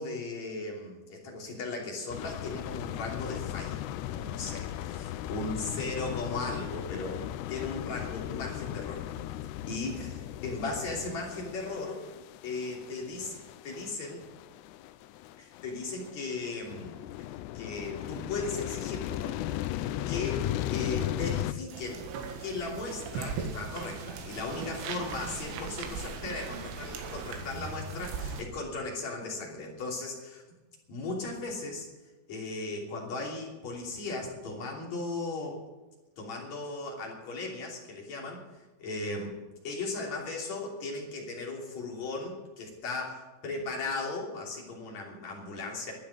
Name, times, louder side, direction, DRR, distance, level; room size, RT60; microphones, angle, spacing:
voice 1, 0.0-7.2 7.5-9.0 9.7-12.0 12.4-14.2 15.4-17.0 17.5-19.4 20.1-22.1 22.4-30.4 30.9-31.9 32.3-35.6 36.2-38.4 38.8-39.4 39.6-45.9, left 3 dB, 40° left, -1 dB, 3.8 m, -37 dB
sound 1, 2.1-21.5, left 13 dB, 80° left, 2.5 m, -37 dB
sound 2, 21.7-28.4, right 5 dB, 85° right, 4.1 m, -38 dB
12.5 x 10.0 x 9.5 m, 1.1 s
omnidirectional pair, 5.3 m